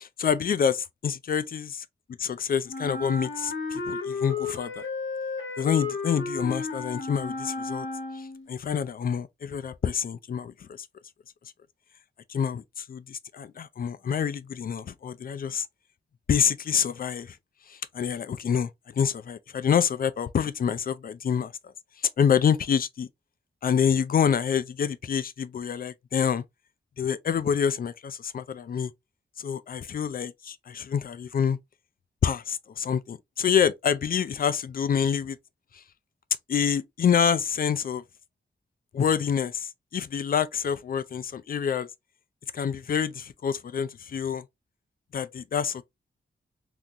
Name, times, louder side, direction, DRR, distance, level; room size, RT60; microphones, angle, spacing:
voice 1, 0.0-1.7 2.2-4.8 5.6-7.9 8.1-10.9 12.3-15.7 16.3-17.4 17.7-18.7 19.0-21.5 22.2-23.1 23.6-26.4 27.0-28.9 29.4-31.6 32.2-35.4 36.5-38.0 38.9-41.9 42.5-44.4 45.1-45.8, left 7 dB, 50° left, 0.4 m, -27 dB
Wind instrument woodwind instrument, 2.7-8.5, left 4 dB, 90° left, 1.2 m, -33 dB
3.7 x 2.9 x 2.5 m
wide cardioid pair, 155°, 19 cm